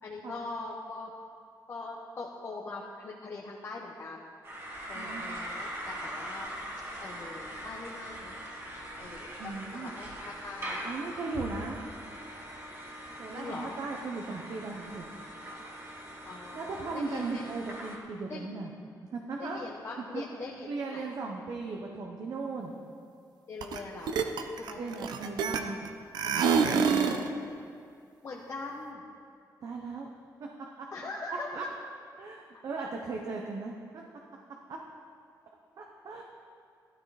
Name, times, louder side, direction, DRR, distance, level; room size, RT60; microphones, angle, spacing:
voice 1, 0.0-1.1 1.7-4.3 4.9-6.5 7.0-8.4 9.0-10.9 13.3-13.8 16.2-17.4 18.3-18.5 19.4-21.1 23.5-24.2 24.6-24.9 28.2-29.0 30.9-31.5, left 3 dB, 40° left, -3 dB, 1.1 m, -42 dB
sound 1, 4.4-18.0, equal, 35° right, 2.2 m, -41 dB
voice 2, 4.9-5.2 9.4-9.9 10.8-11.8 13.2-15.1 16.5-18.7 19.1-19.6 20.0-20.2 20.7-22.7 24.7-25.8 26.2-27.1 29.6-30.1 30.4-30.9 31.3-31.7 32.2-34.0 34.7-34.8 35.8-36.2, right 3 dB, 55° right, 0 dB, 1.0 m, -37 dB
sound 2, 23.6-23.8 24.1-25.9 26.1-27.3, right 6 dB, 90° right, 0.8 m, -26 dB
14.0 x 12.5 x 4.2 m, 2.3 s
cardioid pair, 135°, 7 cm